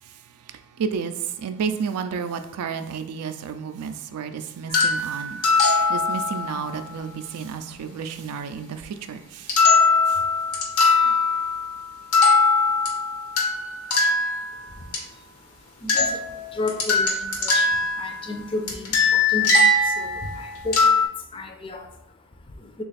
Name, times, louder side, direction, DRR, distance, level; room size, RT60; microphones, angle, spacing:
voice 1, 0.8-1.1 1.4-5.4 5.9-8.8 9.1-9.2, right 6 dB, 85° right, 9 dB, 0.4 m, -31 dB
sound 1, 4.7-6.6 9.5-11.8 12.1-15.0 15.9-18.4 18.7-21.1, left 3 dB, 80° left, 0.8 m, -21 dB
voice 2, 14.5-22.8, left 2 dB, 25° left, 4 dB, 0.4 m, -34 dB
3.2 x 2.3 x 4.1 m, 0.80 s
head